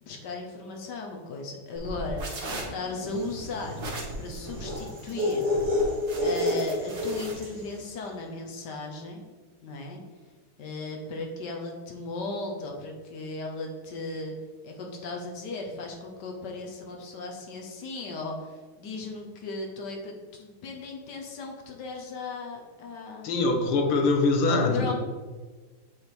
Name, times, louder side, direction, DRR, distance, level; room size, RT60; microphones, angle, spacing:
voice 1, 0.0-3.8 4.2-5.5 6.2-9.2 9.6-10.0 10.6-14.3 14.6-23.4 24.5-24.9, left 3 dB, 65° left, 1 dB, 1.3 m, -36 dB
sound 1, 1.7-7.3, right 1 dB, 80° right, 2.2 m, -38 dB
sound 2, 3.1-7.7, left 1 dB, 60° right, 2.1 m, -29 dB
voice 2, 23.2-24.9, left 3 dB, 90° left, 3 dB, 1.7 m, -23 dB
7.9 x 3.4 x 4.5 m, 1.4 s
omnidirectional pair, 2.3 m